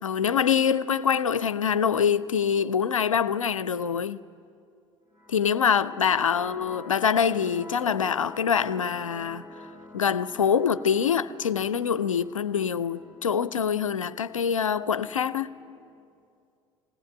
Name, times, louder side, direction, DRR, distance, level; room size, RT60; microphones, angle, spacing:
voice 1, 0.0-4.2 5.3-9.5 9.9-15.5, left 7 dB, 85° left, 0.4 m, -25 dB
sound 1, 5.1-16.1, left 1 dB, 15° right, 2.7 m, -47 dB
21.0 x 18.0 x 8.8 m
figure-of-eight pair, 60°, 16 cm